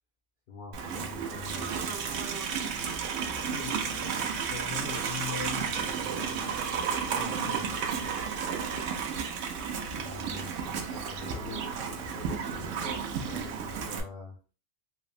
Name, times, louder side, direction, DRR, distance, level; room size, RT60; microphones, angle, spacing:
voice 1, 0.5-2.1 7.2-7.9 9.9-14.4, left 4 dB, 55° left, -1 dB, 0.6 m, -45 dB
Livestock farm animals working animals, 0.7-14.0, right 6 dB, 80° right, 0.9 m, -33 dB
voice 2, 3.4-6.6 7.0-7.7, left 4 dB, 15° right, -2 dB, 0.7 m, -41 dB
3.4 x 2.0 x 2.4 m, 0.36 s
omnidirectional pair, 1.3 m